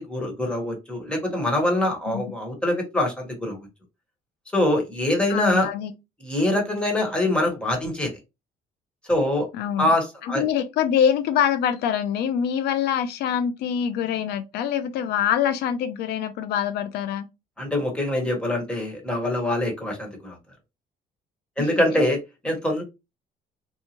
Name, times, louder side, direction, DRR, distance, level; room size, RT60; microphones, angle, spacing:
voice 1, 0.0-3.6 4.5-5.7 6.2-8.1 9.1-9.5 9.8-10.4 17.6-20.4 21.6-22.8, left 1 dB, 5° left, 1.2 m, -24 dB
voice 2, 5.3-5.9 9.5-9.9 10.3-17.3 21.6-21.7, left 9 dB, 75° left, 0.4 m, -24 dB
2.7 x 2.1 x 2.9 m
cardioid pair, 110°, 17 cm